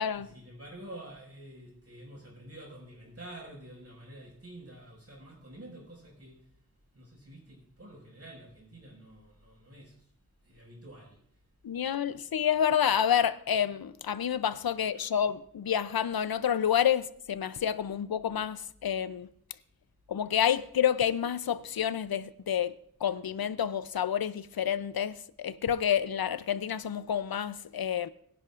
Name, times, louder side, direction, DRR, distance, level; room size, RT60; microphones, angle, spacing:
voice 1, 0.0-6.5 6.9-10.1 10.4-11.2 14.7-15.3, right 1 dB, 45° right, 5.4 m, -49 dB
voice 2, 11.6-19.3 20.1-22.7 23.0-28.1, left 9 dB, 90° left, 0.6 m, -29 dB
22.5 x 10.0 x 2.5 m
wide cardioid pair, 60°, 35 cm